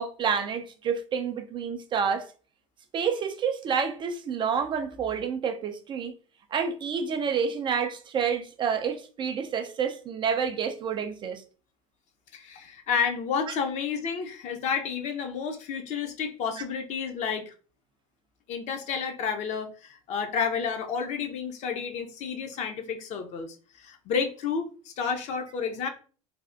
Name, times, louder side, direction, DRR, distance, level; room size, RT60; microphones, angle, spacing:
voice 1, 0.0-2.3 2.9-6.1 6.5-11.4 13.5-13.6, right 6 dB, 25° right, 0.3 m, -29 dB
voice 2, 12.3-17.5 18.5-25.9, left 6 dB, 40° left, 0.6 m, -31 dB
3.3 x 2.3 x 2.5 m
figure-of-eight pair, 80°, 18 cm